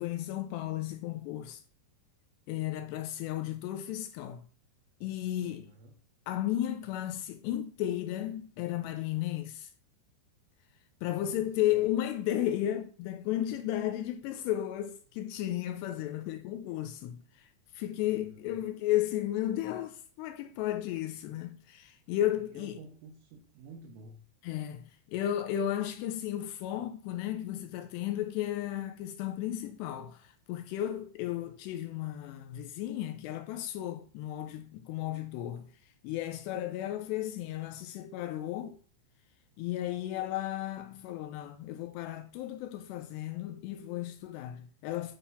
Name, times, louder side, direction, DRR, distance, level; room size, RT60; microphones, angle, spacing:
voice 1, 0.0-1.6 2.5-4.5 5.0-5.7 6.3-9.7 11.0-17.5 17.7-22.8 24.4-35.7 36.0-38.8 39.6-45.2, left 12 dB, 90° left, 2.5 m, -34 dB
voice 2, 5.4-6.0 11.1-11.5 11.7-11.9 18.0-18.6 22.3-24.2, right 3 dB, 80° right, 3.2 m, -52 dB
9.3 x 3.6 x 5.6 m
omnidirectional pair, 5.6 m